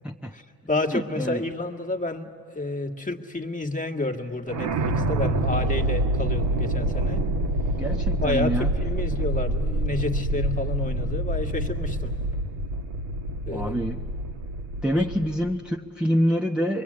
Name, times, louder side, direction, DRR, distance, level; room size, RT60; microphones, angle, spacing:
voice 1, 0.3-7.3 8.2-12.1 13.5-13.8 14.9-15.0, left 2 dB, 15° left, 3 dB, 1.8 m, -30 dB
voice 2, 0.9-1.4 7.8-8.7 13.5-14.0 14.8-16.8, equal, ahead, 0 dB, 1.0 m, -26 dB
sound 1, 4.5-15.6, right 1 dB, 75° right, 1.9 m, -27 dB
24.0 x 22.5 x 8.7 m, 2.7 s
supercardioid pair, 70°, 45 cm